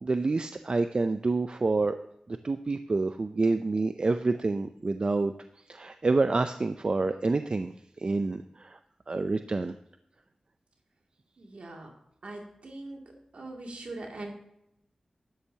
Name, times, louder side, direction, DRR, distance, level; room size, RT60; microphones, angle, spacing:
voice 1, 0.0-1.9 2.4-5.3 5.7-7.7 8.0-8.8 9.1-9.7, right 3 dB, 50° right, 9 dB, 0.5 m, -27 dB
voice 2, 11.4-11.9 12.2-13.0 13.3-14.3, right 2 dB, 75° right, 0 dB, 2.5 m, -41 dB
12.5 x 10.0 x 2.9 m, 0.78 s
cardioid pair, 45°, 2 cm